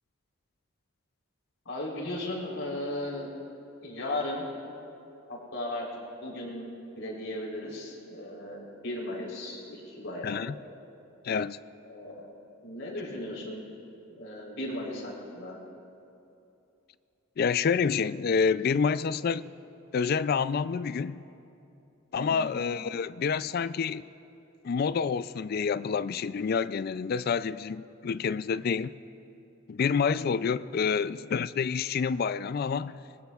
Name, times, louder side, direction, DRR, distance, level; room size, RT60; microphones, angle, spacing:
voice 1, 1.7-3.3 3.8-4.5 5.3-5.9 6.2-6.6 7.0-10.6 11.9-12.2 12.6-13.6 14.0-15.6 22.2-22.5, left 1 dB, 70° left, 3.7 m, -36 dB
voice 2, 10.2-10.5 11.2-11.6 17.4-19.5 19.9-21.2 22.1-24.0 24.6-28.9 29.7-33.0, left 6 dB, 45° left, 0.3 m, -28 dB
25.0 x 20.0 x 2.4 m
head